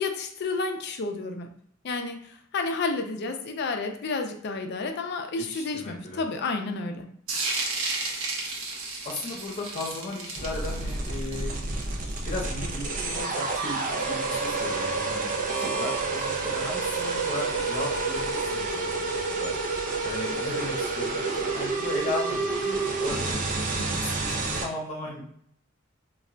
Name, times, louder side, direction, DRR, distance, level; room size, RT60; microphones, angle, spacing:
voice 1, 0.0-1.5 1.8-7.1 23.8-23.9, left 3 dB, 55° left, 5 dB, 0.4 m, -31 dB
voice 2, 5.4-6.2 9.0-11.5 12.2-15.3 15.5-19.5 20.0-21.2 21.5-25.2, left 2 dB, 35° left, -3 dB, 0.8 m, -36 dB
sound 1, 7.3-12.6, right 3 dB, 90° right, 0.7 m, -33 dB
sound 2, 10.4-24.6, right 3 dB, 40° right, 0.4 m, -29 dB
2.3 x 2.1 x 3.7 m, 0.66 s
head